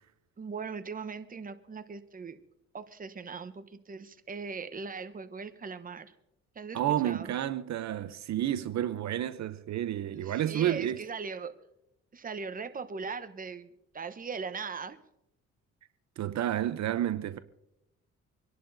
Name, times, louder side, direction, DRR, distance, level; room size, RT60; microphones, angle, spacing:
voice 1, 0.4-2.4 2.7-6.1 6.5-7.4 10.1-11.5 12.1-13.7 13.9-15.0, right 5 dB, 30° right, 0.9 m, -39 dB
voice 2, 6.7-11.0 16.2-17.4, right 11 dB, 65° right, 0.7 m, -30 dB
26.0 x 11.0 x 2.7 m
cardioid pair, 90°, 30 cm